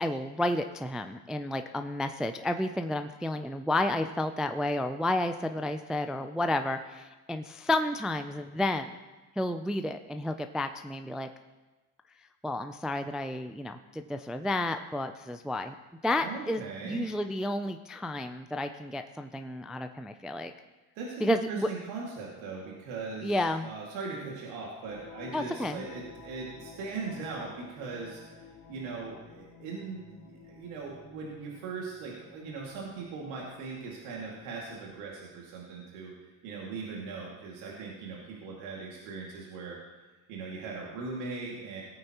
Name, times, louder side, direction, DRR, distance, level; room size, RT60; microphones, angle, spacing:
voice 1, 0.0-9.0 9.4-11.3 12.4-15.7 16.0-20.5 21.2-21.7 23.2-23.7 25.3-25.9, left 1 dB, ahead, 7 dB, 0.3 m, -31 dB
voice 2, 16.2-17.1 20.9-23.4 23.6-36.1 36.4-39.8 40.3-41.8, right 4 dB, 80° right, -3 dB, 2.3 m, -39 dB
sound 1, 24.8-35.1, left 5 dB, 70° left, 2.7 m, -52 dB
17.5 x 8.9 x 3.0 m, 1.2 s
supercardioid pair, 85°, 45 cm